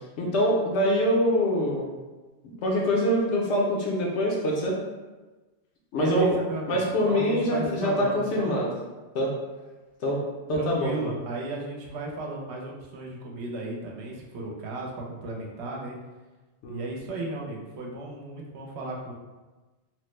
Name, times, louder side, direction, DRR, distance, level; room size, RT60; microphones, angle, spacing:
voice 1, 0.2-1.9 2.4-4.8 5.9-6.3 6.7-8.7 9.1-9.3 10.0-10.2 10.5-10.9 16.6-16.8, equal, 75° left, -3 dB, 0.9 m, -24 dB
voice 2, 5.9-8.6 10.5-16.0 16.7-19.1, right 2 dB, 70° right, -2 dB, 0.9 m, -34 dB
3.1 x 2.1 x 3.1 m, 1.2 s
omnidirectional pair, 1.2 m